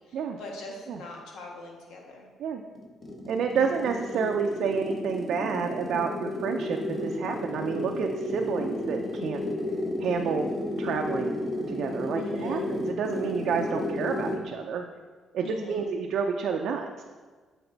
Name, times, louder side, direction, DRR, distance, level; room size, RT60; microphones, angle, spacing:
voice 1, 0.4-2.3 12.2-12.7 15.4-15.8, left 2 dB, 85° left, 0 dB, 1.3 m, -40 dB
sound 1, 2.8-14.5, left 1 dB, 30° left, 1.3 m, -32 dB
voice 2, 3.3-9.4 10.0-10.5 10.8-11.3 11.7-14.8 15.3-17.0, right 6 dB, 75° right, 3 dB, 0.4 m, -29 dB
7.9 x 4.2 x 3.9 m, 1.4 s
cardioid pair, 90°, 0 cm